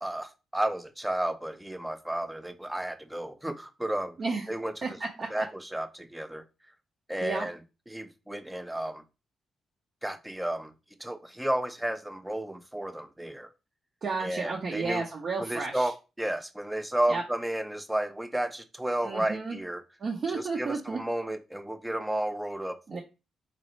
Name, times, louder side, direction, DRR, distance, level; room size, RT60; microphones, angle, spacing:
voice 1, 0.0-4.2 4.5-4.7 5.3-6.4 7.1-7.6 7.9-9.0 10.0-10.7 11.0-13.5 14.2-15.1 15.4-19.8 20.3-23.0, right 1 dB, 5° right, 0.4 m, -32 dB
voice 2, 4.8-5.4 7.2-7.5 14.0-15.9 17.1-17.2 19.0-19.6 20.0-21.0 22.9-23.0, right 4 dB, 50° right, 0.7 m, -32 dB
4.0 x 2.6 x 3.1 m
cardioid pair, 90°, 0 cm